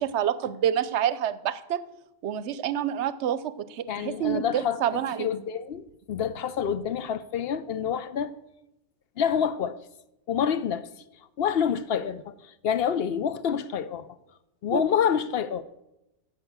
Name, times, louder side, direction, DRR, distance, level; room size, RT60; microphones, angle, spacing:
voice 1, 0.0-1.8 2.2-5.3 14.7-14.8, right 10 dB, 75° right, 0.9 m, -28 dB
voice 2, 3.9-8.3 9.2-9.8 10.3-10.9 11.4-14.1 14.6-15.6, left 8 dB, 65° left, 0.8 m, -27 dB
10.5 x 6.0 x 8.0 m
omnidirectional pair, 1.2 m